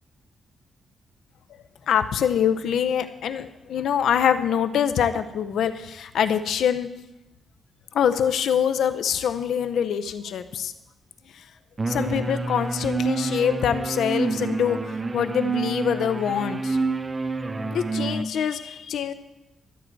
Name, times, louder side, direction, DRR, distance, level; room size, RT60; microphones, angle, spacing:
voice 1, 1.9-6.9 7.9-10.7 11.9-16.8 17.7-19.1, left 8 dB, 80° left, 9 dB, 0.6 m, -24 dB
sound 1, 11.8-18.2, right 3 dB, 20° right, 0.4 m, -28 dB
12.5 x 4.6 x 7.6 m, 0.97 s
wide cardioid pair, 170°, 0 cm